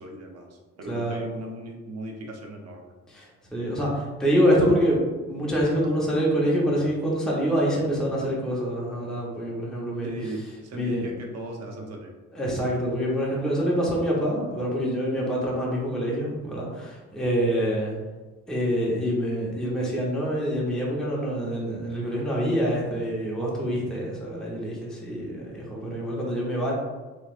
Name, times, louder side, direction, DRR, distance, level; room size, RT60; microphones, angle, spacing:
voice 1, 0.0-2.9 10.0-12.1 17.6-17.7, right 2 dB, 55° right, 2 dB, 0.7 m, -38 dB
voice 2, 0.9-1.2 3.1-10.1 10.7-11.1 12.3-17.9 18.5-26.7, equal, ahead, -5 dB, 0.9 m, -26 dB
3.2 x 3.1 x 2.4 m, 1.3 s
cardioid pair, 90°, 30 cm